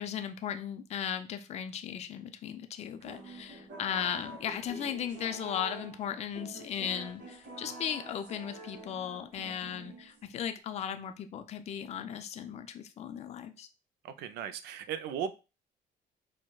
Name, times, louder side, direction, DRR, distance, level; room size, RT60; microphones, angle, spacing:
voice 1, 0.0-13.7, left 9 dB, 40° left, 8 dB, 0.4 m, -37 dB
sound 1, 3.0-10.4, right 2 dB, 55° right, 1.7 m, -47 dB
voice 2, 14.0-15.3, right 8 dB, 75° right, 11 dB, 0.4 m, -36 dB
4.5 x 2.1 x 2.2 m, 0.30 s
cardioid pair, 110°, 17 cm